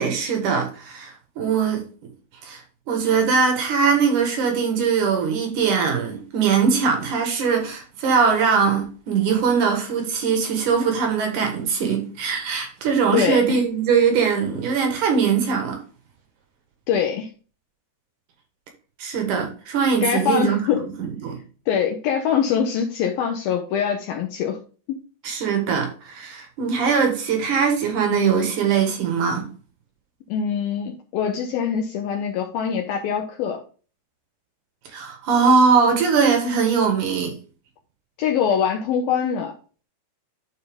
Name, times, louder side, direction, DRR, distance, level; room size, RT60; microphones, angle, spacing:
voice 1, 0.0-1.8 2.4-2.6 2.9-15.8 19.0-21.4 25.2-29.5 34.9-37.3, right 6 dB, 60° right, 2.4 m, -21 dB
voice 2, 13.1-13.6 16.9-17.3 20.0-20.8 21.7-24.6 30.3-33.6 38.2-39.5, left 7 dB, 75° left, 2.3 m, -23 dB
12.0 x 4.3 x 3.5 m
omnidirectional pair, 5.0 m